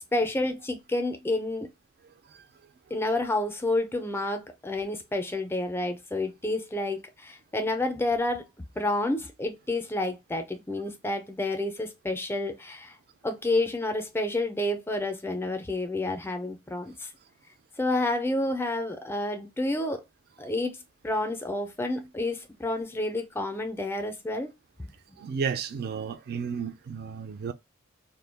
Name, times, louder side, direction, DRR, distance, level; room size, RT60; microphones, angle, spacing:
voice 1, 0.1-1.7 2.9-8.4 8.8-13.0 13.2-17.1 17.8-20.0 20.4-24.5 24.8-25.2, left 2 dB, 10° left, 0.4 m, -29 dB
voice 2, 25.2-27.5, right 6 dB, 50° right, 0.4 m, -32 dB
2.2 x 2.1 x 3.3 m
head